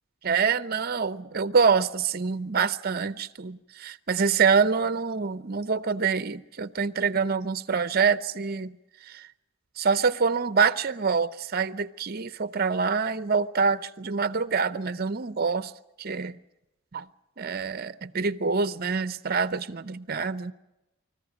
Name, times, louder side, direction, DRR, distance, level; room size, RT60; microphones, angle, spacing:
voice 1, 0.2-8.8 9.1-9.3 9.8-15.7 16.0-16.4 16.9-17.0 17.4-20.5, right 5 dB, 45° right, 0.7 m, -26 dB
25.5 x 14.5 x 9.3 m
head